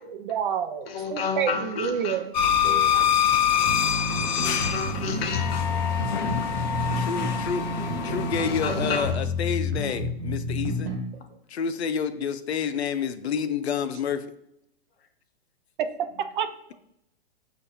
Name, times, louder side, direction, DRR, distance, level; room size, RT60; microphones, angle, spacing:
voice 1, 0.0-2.3 3.9-4.2 16.4-16.5, right 8 dB, 50° right, 10 dB, 0.5 m, -29 dB
voice 2, 0.9-2.2 2.6-3.1 4.1-5.7 6.2-6.5 8.0-9.0, left 5 dB, 70° left, 5 dB, 1.0 m, -32 dB
sound 1, 2.3-9.1, left 8 dB, 45° left, 0.6 m, -25 dB
sound 2, 3.6-11.0, left 2 dB, 80° right, 1.2 m, -29 dB
voice 3, 7.0-10.9 11.5-14.2, left 7 dB, 90° left, 11 dB, 0.5 m, -29 dB
6.4 x 2.5 x 2.8 m, 0.78 s
hypercardioid pair, 135°, 31 cm